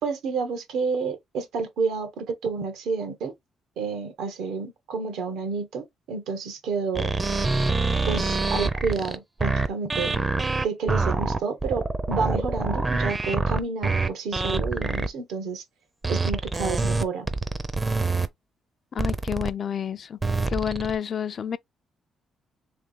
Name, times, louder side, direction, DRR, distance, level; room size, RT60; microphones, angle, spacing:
voice 1, 0.0-3.3 3.8-7.1 8.1-10.2 10.6-15.6 16.1-17.3, right 5 dB, 85° right, 1.2 m, -30 dB
sound 1, 6.9-15.1 16.0-18.3 19.0-19.5 20.2-20.9, right 3 dB, 25° right, 0.5 m, -25 dB
voice 2, 18.9-20.2 20.5-21.6, left 8 dB, 50° left, 0.4 m, -29 dB
3.3 x 2.9 x 3.9 m
cardioid pair, 90°, 0 cm